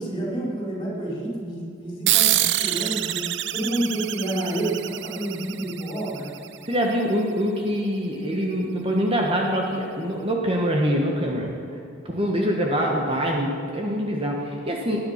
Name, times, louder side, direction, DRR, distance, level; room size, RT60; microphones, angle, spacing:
voice 1, 0.0-3.2 3.5-6.3, right 1 dB, 25° left, -4 dB, 4.6 m, -29 dB
sound 1, 2.1-7.0, right 14 dB, 60° right, 0.5 m, -26 dB
voice 2, 6.6-11.8 12.0-15.0, equal, 25° right, 0 dB, 1.3 m, -24 dB
19.0 x 10.0 x 5.8 m, 2.5 s
head